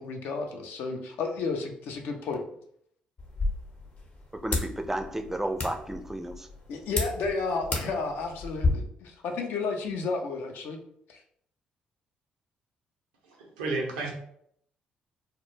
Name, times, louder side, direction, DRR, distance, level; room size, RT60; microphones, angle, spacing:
voice 1, 0.0-2.4 6.7-10.8 11.1-11.2, left 4 dB, 65° left, 3 dB, 0.4 m, -32 dB
sound 1, 3.2-8.7, left 3 dB, 50° left, 0.8 m, -33 dB
voice 2, 4.4-6.5, right 1 dB, 10° right, 6 dB, 0.4 m, -32 dB
voice 3, 13.2-14.1, right 3 dB, 85° right, 0 dB, 0.5 m, -32 dB
2.1 x 2.0 x 3.1 m, 0.68 s
hypercardioid pair, 45°, 4 cm